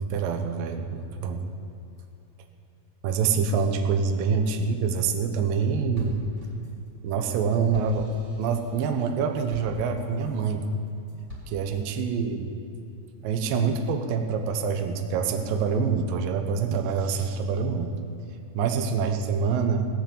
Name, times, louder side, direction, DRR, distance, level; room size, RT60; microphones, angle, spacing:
voice 1, 0.1-1.4 3.0-6.2 7.0-10.7 11.5-12.5 13.2-17.9 18.5-19.9, right 5 dB, 75° right, 6 dB, 2.6 m, -26 dB
sound 1, 5.1-5.6 5.9-10.5 10.9-11.8, left 1 dB, 10° right, 3.9 m, -46 dB
18.0 x 7.7 x 8.9 m, 2.7 s
omnidirectional pair, 4.3 m